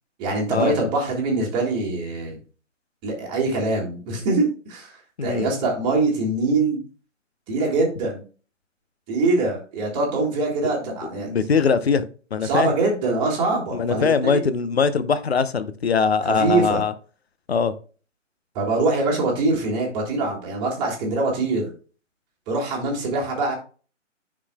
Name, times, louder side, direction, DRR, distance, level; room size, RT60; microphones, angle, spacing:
voice 1, 0.2-2.4 3.0-6.8 7.5-8.2 9.1-11.3 12.4-14.4 16.2-16.8 18.5-21.7 22.5-23.5, right 3 dB, 15° right, 1.8 m, -23 dB
voice 2, 5.2-5.5 11.2-12.7 13.8-16.9 17.5-17.7, left 5 dB, 55° left, 0.9 m, -21 dB
9.4 x 6.2 x 2.3 m
figure-of-eight pair, 140°, 38 cm